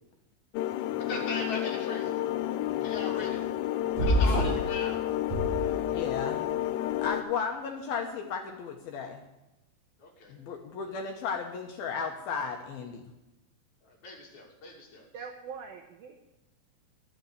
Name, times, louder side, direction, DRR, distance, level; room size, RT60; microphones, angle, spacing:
sound 1, 0.6-7.2, left 13 dB, 90° left, 3.2 m, -30 dB
voice 1, 1.0-2.2 2.8-3.4 4.0-5.0 10.0-10.3 13.8-15.2, left 3 dB, 45° left, -1 dB, 3.5 m, -39 dB
sound 2, 4.0-4.7 5.2-6.2, equal, 45° right, 3.9 m, -27 dB
voice 2, 5.9-6.5 7.0-9.2 10.3-13.0, left 6 dB, 75° left, 3 dB, 2.3 m, -34 dB
voice 3, 15.1-16.2, right 6 dB, 80° right, 4 dB, 2.1 m, -42 dB
12.0 x 9.6 x 7.9 m, 0.99 s
omnidirectional pair, 5.5 m